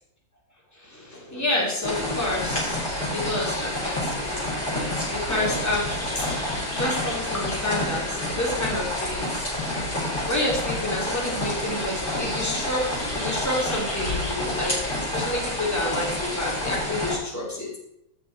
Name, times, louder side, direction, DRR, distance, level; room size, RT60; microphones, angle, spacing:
voice 1, 0.7-9.5 10.3-17.7, left 1 dB, 10° left, -4 dB, 2.7 m, -29 dB
sound 1, 1.8-17.2, left 1 dB, 35° left, 3.4 m, -29 dB
14.5 x 5.3 x 4.6 m, 0.80 s
omnidirectional pair, 1.5 m